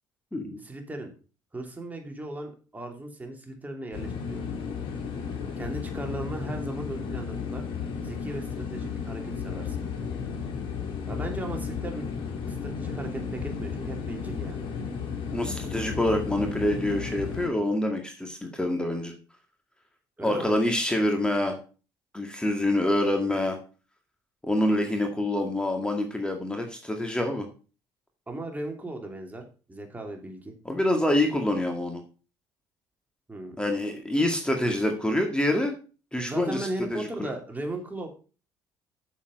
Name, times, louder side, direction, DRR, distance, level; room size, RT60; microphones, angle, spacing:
voice 1, 0.6-1.1 1.5-4.4 5.6-7.6 8.0-9.8 11.1-12.1 12.5-14.6 20.2-20.5 28.3-29.4 29.7-30.5 33.3-33.6 36.2-38.1, right 1 dB, 15° right, 2 dB, 2.9 m, -37 dB
sound 1, 3.9-17.5, left 6 dB, 65° left, 3.1 m, -34 dB
voice 2, 15.3-19.1 20.2-21.6 22.1-23.6 24.4-27.5 30.6-32.0 33.6-35.7 36.1-37.3, left 1 dB, 10° left, 4 dB, 2.1 m, -26 dB
7.3 x 7.2 x 5.3 m, 0.35 s
supercardioid pair, 70°, 9 cm